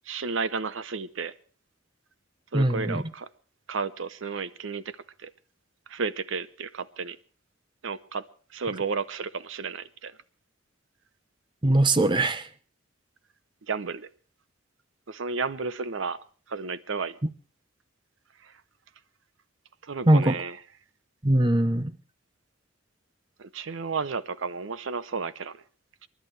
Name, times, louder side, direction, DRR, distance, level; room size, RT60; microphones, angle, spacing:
voice 1, 0.1-1.3 2.5-3.3 3.7-5.3 5.9-7.2 7.8-8.2 8.5-10.1 13.7-14.1 15.1-16.2 16.5-17.2 18.4-18.5 19.8-20.5 23.4-25.6 26.0-26.1, right 4 dB, 75° right, 15 dB, 0.7 m, -32 dB
voice 2, 2.5-3.0 11.6-12.5 20.1-20.4 21.2-21.9, right 1 dB, 25° right, 12 dB, 0.8 m, -21 dB
28.0 x 11.0 x 3.2 m, 0.42 s
head